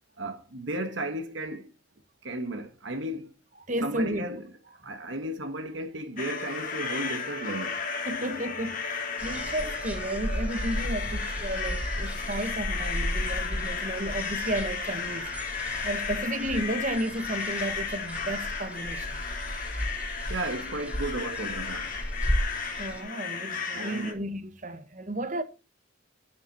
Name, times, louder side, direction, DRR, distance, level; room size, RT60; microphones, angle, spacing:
voice 1, 0.2-1.7 2.2-3.3 3.8-4.4 4.8-7.8 20.3-22.0 23.7-24.2, right 1 dB, 75° right, 1.8 m, -34 dB
voice 2, 3.7-4.3 4.8-4.9 8.0-15.3 15.8-19.2 22.8-25.4, right 1 dB, 40° right, 1.4 m, -33 dB
sound 1, 6.2-24.1, left 5 dB, 45° left, 2.4 m, -34 dB
sound 2, 9.2-23.0, equal, 10° right, 3.0 m, -34 dB
11.5 x 9.3 x 4.1 m
head